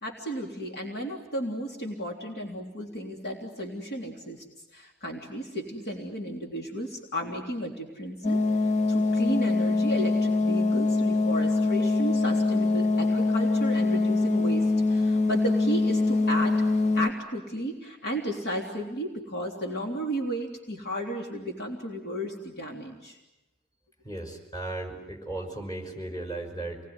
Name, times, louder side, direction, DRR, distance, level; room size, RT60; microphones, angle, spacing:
voice 1, 0.0-4.5 4.7-8.4 8.9-16.6 16.9-23.2, right 1 dB, 55° left, 1 dB, 3.4 m, -34 dB
sound 1, 8.2-17.1, left 3 dB, 35° left, 1.3 m, -24 dB
voice 2, 24.0-26.8, right 2 dB, 20° left, 2 dB, 5.6 m, -36 dB
28.0 x 21.0 x 9.7 m, 1.0 s
head